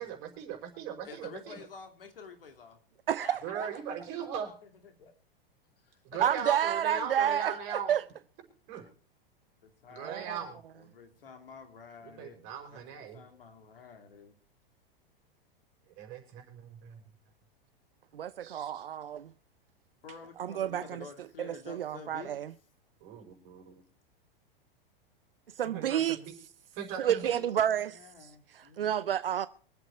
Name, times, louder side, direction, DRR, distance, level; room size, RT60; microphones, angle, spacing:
voice 1, 0.0-1.7 3.4-4.6 6.0-7.9 8.7-8.9 9.9-10.6 12.0-13.2 15.9-17.0 18.4-18.9 23.0-23.8 25.6-26.3 26.7-27.4, right 8 dB, 45° right, 5.6 m, -39 dB
voice 2, 1.0-2.8 3.2-3.7 4.6-5.1 5.8-6.2 9.6-12.4 12.7-14.3 20.0-22.4 26.9-28.9, left 5 dB, 70° left, 2.6 m, -50 dB
voice 3, 3.1-3.6 6.2-7.5 7.9-8.0 10.0-10.2 18.1-19.3 20.4-21.0 21.4-22.5 25.6-26.2 27.0-27.9 28.5-29.5, right 10 dB, 75° right, 0.6 m, -30 dB
24.5 x 8.2 x 4.5 m
figure-of-eight pair, 95°, 29 cm